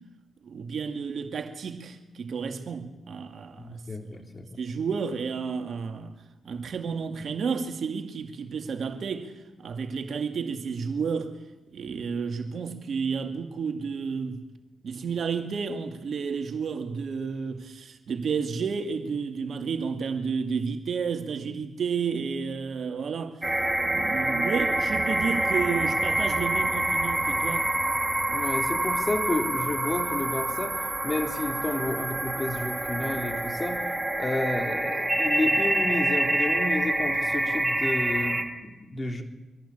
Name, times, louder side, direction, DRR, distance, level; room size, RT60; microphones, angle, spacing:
voice 1, 0.4-3.8 4.6-6.1 6.4-9.3 9.6-11.3 11.7-14.4 14.8-23.4 23.8-27.7, right 5 dB, 60° right, 2.3 m, -31 dB
voice 2, 3.6-4.5 28.3-30.7 31.0-33.8 34.2-39.2, left 2 dB, 30° left, 3.3 m, -31 dB
sound 1, 23.4-38.4, right 1 dB, 15° right, 3.4 m, -27 dB
25.0 x 11.5 x 8.8 m
supercardioid pair, 45°, 0 cm